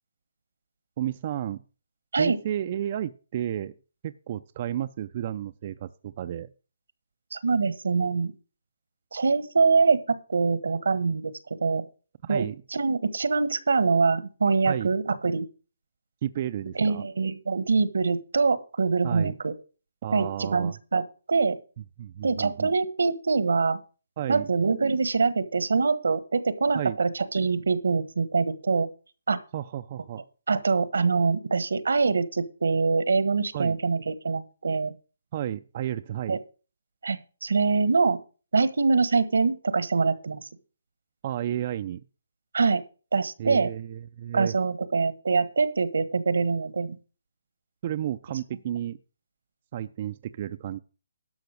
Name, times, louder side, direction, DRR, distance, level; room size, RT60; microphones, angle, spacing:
voice 1, 1.0-1.6 2.2-3.7 4.0-6.5 12.2-12.6 14.6-14.9 16.2-17.0 19.0-19.3 20.0-20.8 22.0-22.8 24.2-24.5 26.7-27.0 29.5-30.2 33.5-33.8 35.3-36.4 41.2-42.0 43.4-44.5 47.8-49.0 49.7-50.8, right 11 dB, 35° right, 10 dB, 0.4 m, -32 dB
voice 2, 7.3-8.3 9.1-11.3 11.6-11.8 12.3-12.4 12.7-15.4 16.8-19.5 20.1-21.0 21.3-21.6 22.2-23.8 24.3-28.9 29.3-29.4 30.5-34.9 36.3-36.4 37.0-38.2 38.5-40.4 42.5-42.8 43.1-43.7 44.3-46.9, right 4 dB, 80° right, 14 dB, 1.3 m, -24 dB
12.0 x 5.8 x 6.3 m, 0.36 s
hypercardioid pair, 165°, 0 cm